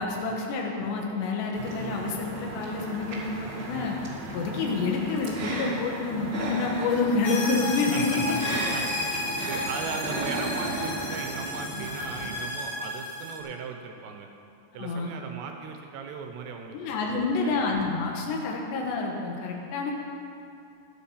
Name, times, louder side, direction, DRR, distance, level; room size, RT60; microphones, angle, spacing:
voice 1, 0.0-4.0 4.3-8.4 14.8-15.2 16.7-19.9, left 4 dB, 85° left, 0 dB, 3.5 m, -28 dB
sound 1, 1.5-12.4, right 2 dB, 40° right, 1.3 m, -35 dB
sound 2, 7.2-13.4, left 1 dB, 60° left, 1.3 m, -33 dB
voice 2, 7.9-8.4 8.7-14.3 14.7-17.5, right 5 dB, 80° right, 4 dB, 3.1 m, -38 dB
13.5 x 10.0 x 5.8 m, 2.5 s
omnidirectional pair, 4.9 m